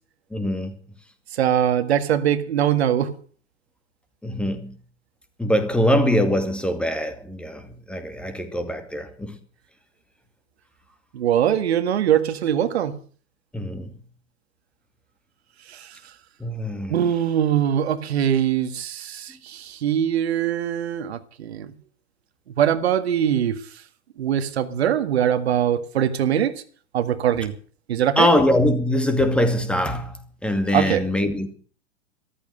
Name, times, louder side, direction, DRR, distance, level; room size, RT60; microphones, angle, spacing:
voice 1, 0.3-0.8 4.2-4.8 5.4-9.4 13.5-14.0 16.4-17.0 28.2-31.5, left 1 dB, 5° left, 2.3 m, -23 dB
voice 2, 1.3-3.2 11.1-13.0 15.7-15.9 16.9-21.7 22.6-23.6 24.2-26.6 26.9-27.5 27.9-28.3 30.7-31.1, right 10 dB, 60° right, 1.9 m, -22 dB
14.0 x 14.0 x 6.5 m
figure-of-eight pair, 100°, 36 cm